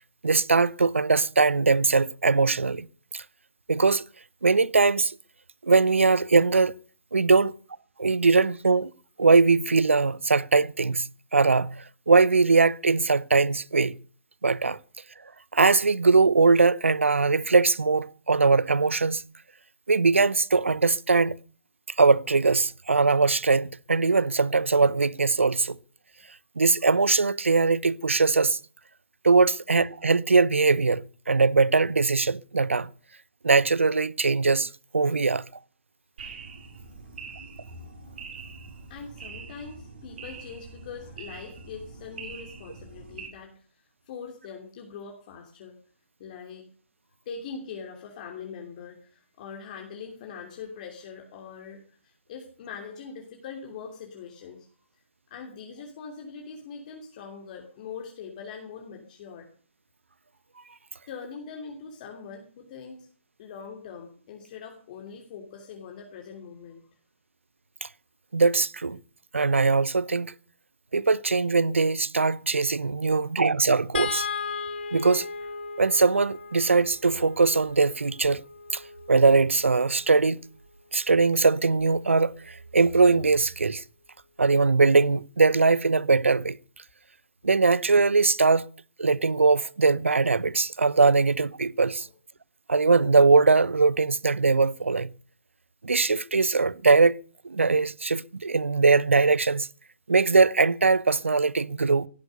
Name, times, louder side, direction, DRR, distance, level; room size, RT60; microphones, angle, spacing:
voice 1, 0.2-2.9 3.1-3.2 3.7-4.0 4.4-5.2 5.6-6.7 7.1-7.5 8.0-8.9 9.2-14.0 14.4-14.8 15.5-19.2 19.9-21.4 22.0-25.8 26.6-28.6 29.2-32.9 33.4-35.4 67.8-67.9 68.3-69.0 69.3-70.3 70.9-74.3 74.9-75.3 75.8-78.4 78.7-78.8 79.1-80.4 80.9-83.8 84.4-86.6 87.4-88.7 89.0-92.1 92.7-95.1 95.8-97.2 97.4-99.7 100.1-102.1, right 4 dB, 80° right, 0.8 m, -21 dB
sound 1, 36.2-43.3, right 4 dB, 55° right, 5.2 m, -43 dB
voice 2, 38.9-43.5 44.1-45.8 46.2-46.7 47.2-54.7 55.3-59.5 61.1-63.1 63.4-66.8 73.1-73.3, left 6 dB, 40° left, 3.0 m, -42 dB
sound 2, 73.9-80.3 81.8-82.0 82.3-82.5, left 5 dB, 55° left, 2.4 m, -37 dB
17.0 x 10.5 x 6.7 m
figure-of-eight pair, 135°, 7 cm